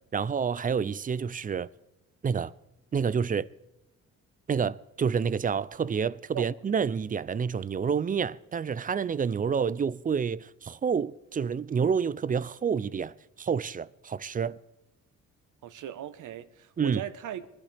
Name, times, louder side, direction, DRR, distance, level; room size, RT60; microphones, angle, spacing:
voice 1, 0.1-1.7 2.2-2.5 2.9-3.5 4.5-14.6 16.8-17.0, right 6 dB, 25° right, 0.4 m, -28 dB
voice 2, 15.6-17.6, right 11 dB, 70° right, 1.0 m, -38 dB
22.5 x 12.0 x 3.4 m
cardioid pair, 75°, 32 cm